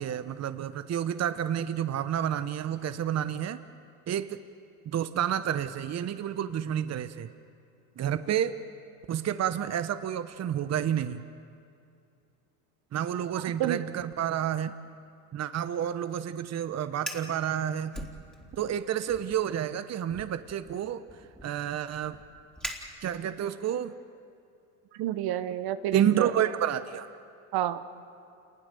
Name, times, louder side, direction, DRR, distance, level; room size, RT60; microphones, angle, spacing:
voice 1, 0.0-3.6 4.1-4.4 4.8-7.3 8.0-8.6 9.1-11.2 12.9-14.7 15.3-18.0 18.5-21.0 21.4-22.2 23.0-23.9 25.9-27.1, right 10 dB, 35° right, 12 dB, 1.1 m, -29 dB
voice 2, 13.3-13.8 24.9-26.3 27.5-27.8, right 12 dB, 55° right, 11 dB, 1.2 m, -30 dB
Fire, 16.9-17.4 17.9-18.7 19.1-19.4 20.1-23.5, equal, ahead, 3.5 m, -42 dB
28.0 x 20.5 x 6.9 m, 2.5 s
hypercardioid pair, 80°, 44 cm